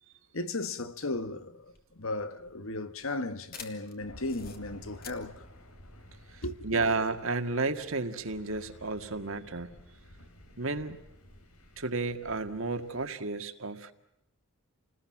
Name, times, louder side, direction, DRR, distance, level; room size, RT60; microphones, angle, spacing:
voice 1, 0.3-5.4 6.4-6.8, left 2 dB, 65° left, 1.5 m, -36 dB
sound 1, 1.6-6.8, left 6 dB, 40° left, 2.7 m, -50 dB
Thunder, 4.0-13.1, left 1 dB, 90° left, 4.0 m, -53 dB
voice 2, 6.3-9.8 10.6-11.0 11.8-13.9, right 3 dB, 65° right, 1.9 m, -32 dB
29.5 x 20.0 x 7.4 m
head